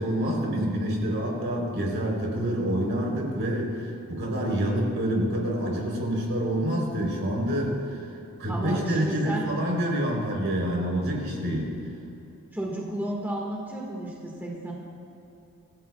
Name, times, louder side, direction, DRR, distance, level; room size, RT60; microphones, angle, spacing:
voice 1, 0.0-8.0 8.4-11.7, right 1 dB, 60° right, -1 dB, 3.7 m, -27 dB
voice 2, 8.5-9.4 12.5-14.7, right 1 dB, 10° right, -3 dB, 1.7 m, -33 dB
25.5 x 15.5 x 2.4 m, 2.9 s
head